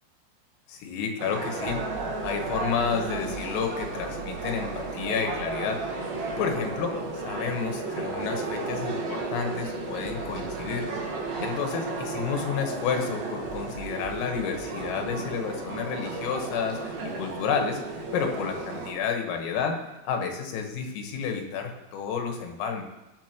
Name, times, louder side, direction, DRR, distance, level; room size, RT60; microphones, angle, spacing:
voice 1, 0.7-1.8 2.2-5.8 6.4-10.9 11.4-19.8 20.1-22.8, left 6 dB, 85° left, 3 dB, 4.1 m, -30 dB
sound 1, 1.2-18.9, right 3 dB, 60° right, 2.9 m, -34 dB
sound 2, 1.7-8.0 8.4-8.5 10.0-12.5 13.5-16.2, right 7 dB, 85° right, 3.4 m, -46 dB
sound 3, 12.5-13.9 14.3-15.5 16.1-17.0 17.3-18.7 19.0-20.2 20.6-21.4, right 1 dB, 20° right, 1.6 m, -52 dB
18.5 x 9.7 x 3.0 m, 0.99 s
omnidirectional pair, 5.8 m